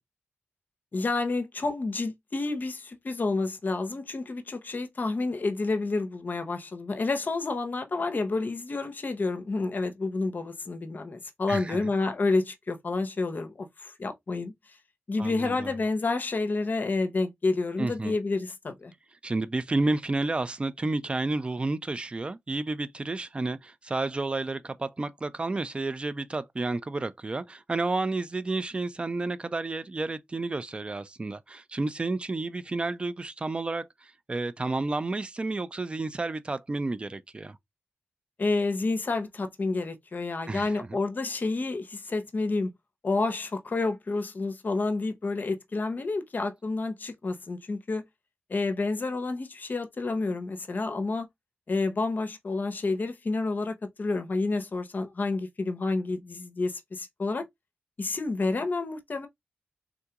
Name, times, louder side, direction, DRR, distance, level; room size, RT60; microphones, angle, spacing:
voice 1, 0.9-14.5 15.1-18.9 38.4-42.7 43.0-48.0 48.5-51.3 51.7-57.5 58.0-59.3, left 3 dB, 45° left, 0.7 m, -29 dB
voice 2, 11.5-11.9 15.2-15.7 17.8-18.1 19.2-37.6 40.5-41.0, right 2 dB, 25° right, 0.4 m, -31 dB
3.7 x 2.3 x 2.8 m
wide cardioid pair, 85°, 4 cm